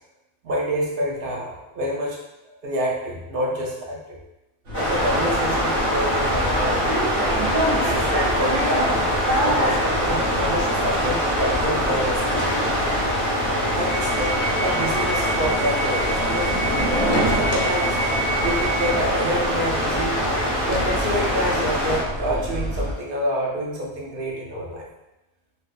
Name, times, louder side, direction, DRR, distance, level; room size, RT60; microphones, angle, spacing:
voice 1, 0.4-2.2 2.5-4.2 4.7-6.9 7.7-8.9 9.4-12.5 13.7-16.6 17.1-18.0 18.4-20.2 20.7-24.9, equal, 60° right, -3 dB, 0.7 m, -28 dB
sound 1, 4.7-22.0, equal, 15° left, 0.5 m, -23 dB
sound 2, 4.7-22.9, right 1 dB, 80° right, 1.2 m, -28 dB
sound 3, 12.3-13.3 13.6-13.7 14.0-14.5 14.8-16.4 16.8-17.7 18.0-18.1 18.4-18.5 18.8-18.9 19.2-19.3 19.6-19.7 20.0-20.1 20.4-20.5 20.7-21.8, left 2 dB, 65° left, 0.7 m, -34 dB
2.5 x 2.1 x 2.4 m, 0.96 s
omnidirectional pair, 1.3 m